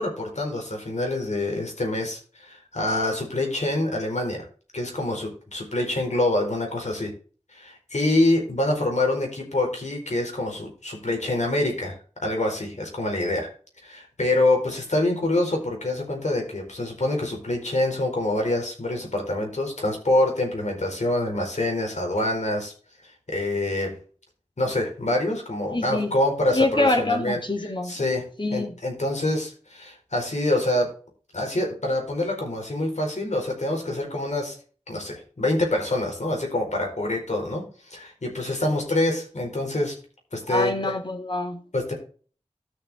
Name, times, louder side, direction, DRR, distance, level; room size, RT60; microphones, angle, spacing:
voice 1, 0.0-4.5 4.7-7.1 7.5-11.9 12.2-13.5 13.8-22.7 23.3-23.9 24.6-27.4 27.9-28.2 28.5-30.9 31.3-34.6 34.9-39.9 40.3-40.9 41.7-41.9, left 1 dB, 80° left, 4.5 m, -26 dB
voice 2, 25.7-26.1 26.5-28.0 28.4-28.8 40.5-41.6, left 2 dB, 40° left, 2.0 m, -25 dB
13.0 x 7.0 x 3.6 m
wide cardioid pair, 45°, 12 cm